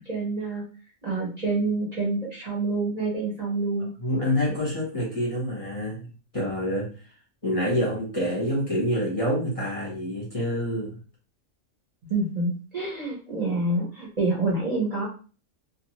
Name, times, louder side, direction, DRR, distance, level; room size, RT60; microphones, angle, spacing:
voice 1, 0.0-0.6 1.0-3.9 12.0-15.1, right 3 dB, 35° right, -5 dB, 0.8 m, -27 dB
voice 2, 4.0-6.9 7.4-11.0, equal, 30° left, -5 dB, 0.8 m, -27 dB
2.4 x 2.3 x 2.9 m, 0.37 s
omnidirectional pair, 1.3 m